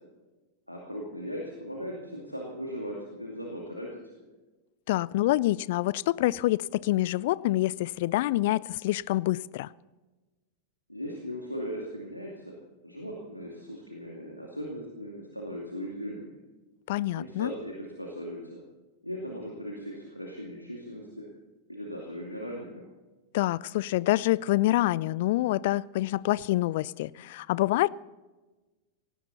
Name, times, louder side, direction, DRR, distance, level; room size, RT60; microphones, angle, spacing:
voice 1, 0.7-3.9 10.9-16.4 17.2-18.6 19.0-21.2 21.7-22.8, equal, 90° left, -1 dB, 2.4 m, -38 dB
voice 2, 4.9-9.7 16.9-17.5 23.3-27.9, left 16 dB, 50° left, 22 dB, 0.4 m, -26 dB
18.5 x 17.0 x 4.2 m, 1.2 s
figure-of-eight pair, 90°, 0 cm